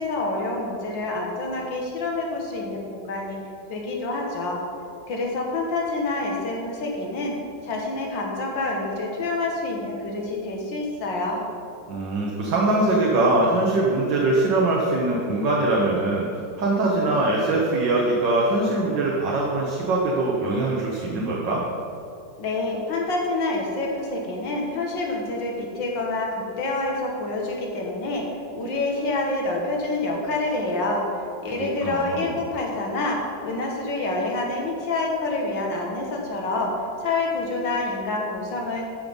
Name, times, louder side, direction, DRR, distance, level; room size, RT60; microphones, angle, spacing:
voice 1, 0.0-3.4 3.7-4.6 5.1-7.3 7.6-11.4 22.4-28.2 28.5-31.0 31.4-36.7 37.0-38.8, left 2 dB, 70° left, -1 dB, 2.3 m, -27 dB
voice 2, 11.9-21.6 31.8-32.4, right 2 dB, 65° right, -3 dB, 1.8 m, -22 dB
13.0 x 5.8 x 5.3 m, 2.6 s
omnidirectional pair, 2.1 m